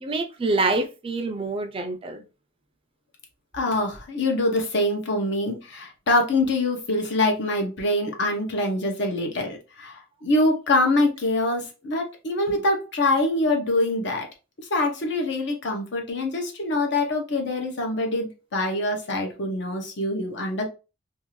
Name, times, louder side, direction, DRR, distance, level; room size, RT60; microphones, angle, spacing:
voice 1, 0.0-2.2, right 3 dB, 30° right, 0.4 m, -26 dB
voice 2, 3.5-14.3 14.7-20.6, left 2 dB, 65° left, 0.8 m, -24 dB
2.6 x 2.5 x 3.0 m
head